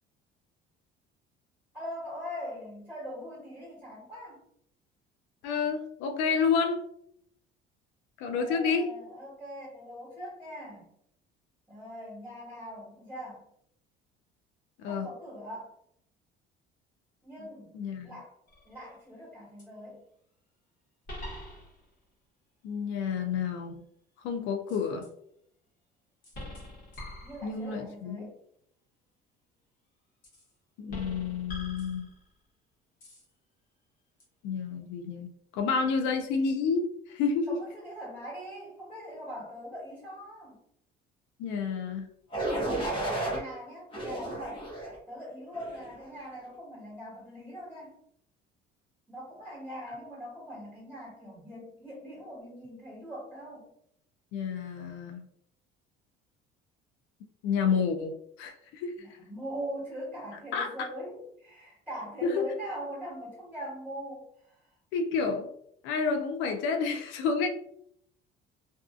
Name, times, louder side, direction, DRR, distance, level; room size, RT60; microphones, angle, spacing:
voice 1, 1.7-4.4 8.3-10.9 11.7-13.5 14.8-15.7 17.2-17.8 18.0-18.4 18.6-20.0 27.2-28.4 37.5-40.6 43.2-44.6 45.1-48.0 49.1-53.7 59.0-64.7, equal, 5° right, -9 dB, 1.2 m, -41 dB
voice 2, 5.4-6.8 8.2-8.9 14.8-15.1 17.7-18.1 22.6-23.8 24.2-25.1 27.4-28.3 30.8-32.1 34.4-37.6 41.4-42.1 54.3-55.2 57.4-59.0 60.5-60.9 62.2-62.4 64.9-65.5 65.8-67.5, left 5 dB, 85° left, 5 dB, 0.4 m, -30 dB
sound 1, 18.5-18.9 19.6-19.7 21.1-22.0 24.7-25.1 26.2-27.8 30.2-30.5 30.9-32.4 33.0-33.3 34.2-34.3, left 1 dB, 45° left, 1.1 m, -44 dB
sound 2, 42.3-43.4 43.9-45.0 45.5-45.9, right 1 dB, 25° left, 0.8 m, -32 dB
2.6 x 2.3 x 2.3 m, 0.71 s
cardioid pair, 150°, 19 cm